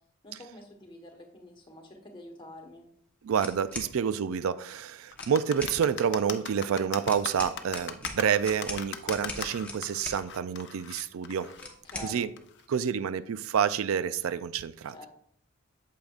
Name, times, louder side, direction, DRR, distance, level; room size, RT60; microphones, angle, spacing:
voice 1, 0.2-2.9 11.6-12.3 14.9-15.1, left 2 dB, 25° left, 3 dB, 1.2 m, -47 dB
voice 2, 3.2-11.5 12.0-12.3 12.7-14.9, right 7 dB, 80° right, 14 dB, 0.4 m, -28 dB
sound 1, 3.4-3.9 5.1-5.8 7.1-10.2 11.6-12.1, left 2 dB, 5° left, 0.9 m, -40 dB
sound 2, 5.1-12.6, left 7 dB, 55° left, 0.6 m, -39 dB
8.5 x 7.6 x 2.4 m, 0.65 s
head